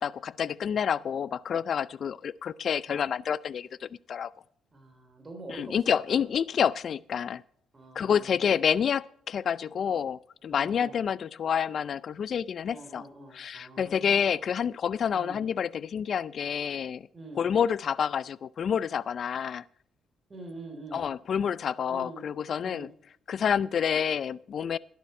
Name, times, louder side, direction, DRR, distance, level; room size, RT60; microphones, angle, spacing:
voice 1, 0.0-4.3 5.5-7.4 7.9-13.0 13.3-17.1 17.4-19.6 20.9-22.9 23.3-24.8, left 7 dB, 55° left, 0.5 m, -28 dB
voice 2, 4.7-6.2 7.7-8.5 10.5-11.0 12.6-14.4 15.1-15.4 17.1-17.5 20.3-21.0 21.9-22.2 22.6-22.9, right 2 dB, 30° right, 3.6 m, -45 dB
12.5 x 11.5 x 4.4 m
cardioid pair, 90°, 0 cm